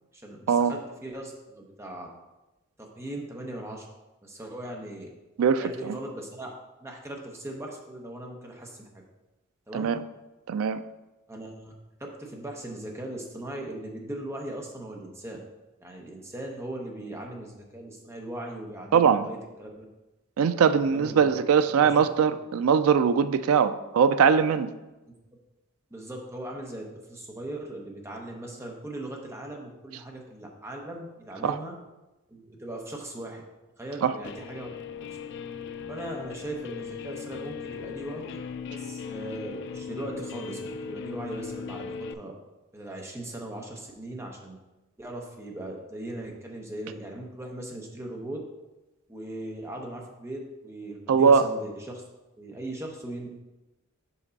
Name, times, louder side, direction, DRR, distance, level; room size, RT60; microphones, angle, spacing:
voice 1, 0.1-2.1 2.8-3.9 4.2-5.1 5.6-6.5 6.8-8.9 9.7-10.0 11.3-11.7 12.0-15.4 15.8-19.8 20.9-21.2 21.7-22.3 25.9-31.7 32.3-33.4 33.8-34.7 35.0-35.1 35.9-38.4 38.7-42.3 42.7-44.6 45.0-48.4 49.1-52.0 52.4-53.4, right 1 dB, 15° right, 0 dB, 0.9 m, -39 dB
voice 2, 5.4-6.0 9.7-10.0 10.5-10.8 18.9-19.2 20.4-24.7 31.4-31.6 34.0-34.1 51.1-51.5, right 6 dB, 75° right, 12 dB, 0.3 m, -21 dB
Guitar, 34.2-42.1, left 6 dB, 55° left, 0.3 m, -38 dB
5.6 x 5.2 x 4.0 m, 1.0 s
head